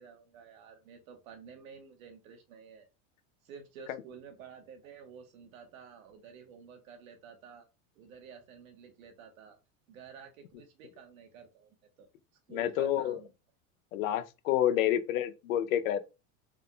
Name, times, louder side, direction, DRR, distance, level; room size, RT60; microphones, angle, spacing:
voice 1, 0.0-2.9 3.4-7.7 7.9-9.6 9.9-12.1 12.5-13.3, right 6 dB, 85° right, 1.3 m, -51 dB
voice 2, 12.5-13.2 13.9-16.1, left 11 dB, 85° left, 0.6 m, -29 dB
3.7 x 3.6 x 2.2 m
supercardioid pair, 115°, 40 cm